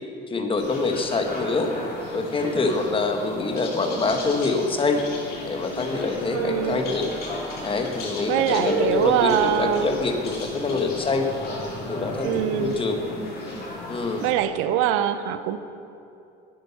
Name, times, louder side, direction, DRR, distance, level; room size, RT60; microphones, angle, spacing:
voice 1, 0.3-1.7 2.1-5.0 5.4-7.1 7.6-11.3 11.9-13.0 13.9-14.3, left 3 dB, 25° left, 5 dB, 1.1 m, -25 dB
sound 1, 0.6-14.3, left 1 dB, 50° left, 2.6 m, -34 dB
voice 2, 6.3-6.8 8.3-9.9 12.2-12.9 14.2-15.6, right 10 dB, 85° right, 11 dB, 0.6 m, -23 dB
9.4 x 8.3 x 5.7 m, 2.7 s
cardioid pair, 105°, 21 cm